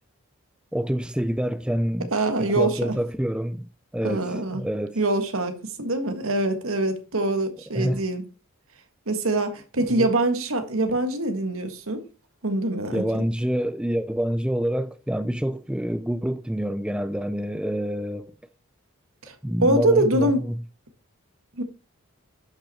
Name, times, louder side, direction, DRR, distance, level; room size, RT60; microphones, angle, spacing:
voice 1, 0.7-2.1 2.4-3.7 3.9-5.0 7.7-8.0 10.0-10.1 10.9-11.0 12.9-18.3 19.4-20.6, equal, 5° right, 0.4 m, -27 dB
voice 2, 2.1-2.8 4.0-4.6 4.9-8.2 9.1-12.0 12.4-13.0 19.2-20.4 21.6-21.7, right 2 dB, 70° right, 1.7 m, -24 dB
11.5 x 5.9 x 4.3 m
head